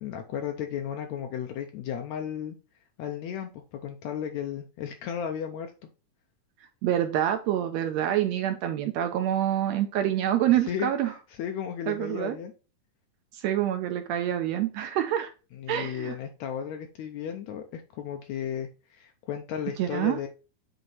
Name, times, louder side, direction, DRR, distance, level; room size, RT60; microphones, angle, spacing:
voice 1, 0.0-2.6 3.0-5.7 10.7-12.5 15.5-20.3, left 9 dB, 75° left, 4 dB, 1.8 m, -34 dB
voice 2, 6.8-11.1 11.9-12.4 13.3-15.3 15.7-16.2 19.8-20.2, right 11 dB, 75° right, 7 dB, 1.7 m, -26 dB
7.9 x 2.8 x 4.3 m, 0.33 s
omnidirectional pair, 3.6 m